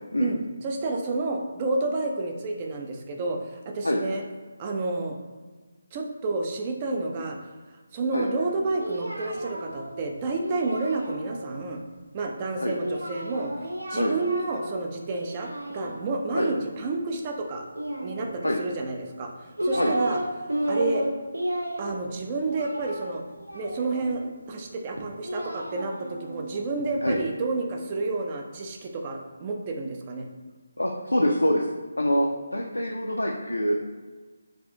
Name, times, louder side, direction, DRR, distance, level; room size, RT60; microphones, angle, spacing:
voice 1, 0.2-4.2 4.6-5.2 5.9-7.4 7.9-11.8 12.1-13.5 13.9-17.7 18.0-20.2 20.7-21.0 21.8-23.2 23.5-30.3, right 3 dB, 25° right, 2 dB, 0.3 m, -30 dB
Singing, 8.4-11.6 12.8-14.8 15.1-16.3 17.7-18.7 19.2-20.2 20.5-24.2 24.9-27.2, right 1 dB, 75° right, 0.5 m, -33 dB
voice 2, 30.8-31.7 32.0-33.8, equal, 75° left, 0 dB, 0.3 m, -25 dB
3.3 x 2.5 x 2.6 m, 1.4 s
figure-of-eight pair, 150°, 0 cm